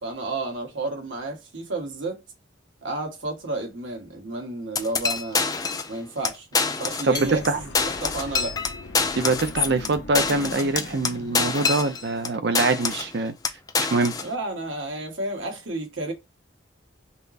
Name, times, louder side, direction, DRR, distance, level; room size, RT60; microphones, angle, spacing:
voice 1, 0.0-2.2 2.8-5.5 5.9-8.6 14.2-16.1, right 2 dB, 75° right, 1.4 m, -31 dB
sound 1, 4.8-5.9 6.2-6.3 6.5-7.5 7.7-12.3 12.6-13.1 13.4-14.3, left 5 dB, 20° left, 0.3 m, -26 dB
voice 2, 7.0-7.6 9.1-13.3 13.9-14.1, right 3 dB, 60° right, 0.6 m, -24 dB
sound 2, 7.1-12.3, left 3 dB, 70° left, 0.7 m, -41 dB
5.4 x 2.1 x 2.5 m
head